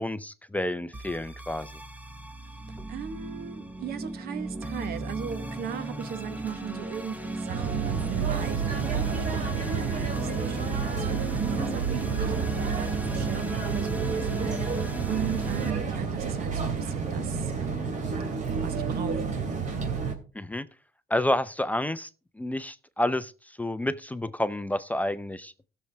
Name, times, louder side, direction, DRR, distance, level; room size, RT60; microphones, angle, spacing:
voice 1, 0.0-1.7 20.4-20.7 21.1-22.1 22.4-23.3 23.6-25.5, left 1 dB, 10° left, 0.5 m, -29 dB
sound 1, 0.9-15.7, right 2 dB, 10° right, 1.1 m, -36 dB
voice 2, 2.9-18.0 18.6-19.4, right 9 dB, 65° right, 1.1 m, -38 dB
sound 2, 7.5-20.1, right 5 dB, 45° right, 2.6 m, -30 dB
16.5 x 6.8 x 3.4 m
cardioid pair, 110°, 17 cm